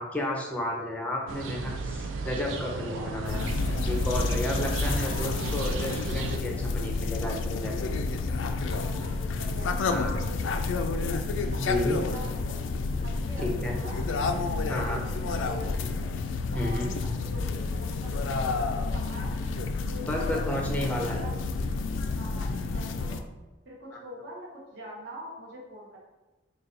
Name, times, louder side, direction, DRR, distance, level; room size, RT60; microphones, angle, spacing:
voice 1, 0.0-7.9 9.9-10.2 11.6-12.0 13.4-13.7 14.7-15.0 16.5-17.0 20.1-21.2 23.9-24.0, left 1 dB, 5° left, -1 dB, 0.5 m, -32 dB
sound 1, 1.3-6.4, right 4 dB, 75° right, 0.4 m, -35 dB
voice 2, 2.7-3.1 4.8-5.3 8.4-10.9 11.5-11.7 11.9-12.6 12.9-14.0 14.6-15.9 16.5-17.5 17.7-19.3 19.9-20.3 20.8-21.3 22.1-23.2 23.6-26.0, right 1 dB, 55° right, -4 dB, 1.1 m, -44 dB
sound 2, 3.2-23.2, left 3 dB, 70° left, 0.3 m, -30 dB
4.0 x 2.3 x 3.8 m, 1.2 s
head